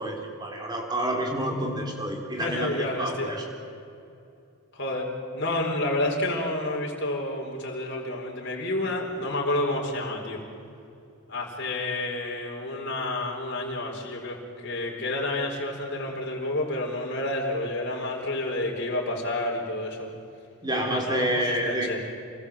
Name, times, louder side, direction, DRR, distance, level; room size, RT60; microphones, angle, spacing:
voice 1, 0.0-3.5 20.6-21.9, right 1 dB, 20° right, 1 dB, 3.8 m, -29 dB
voice 2, 2.4-3.3 4.7-10.4 11.3-20.1 20.7-22.0, left 1 dB, 50° left, -2 dB, 4.7 m, -30 dB
28.5 x 20.5 x 7.9 m, 2.6 s
head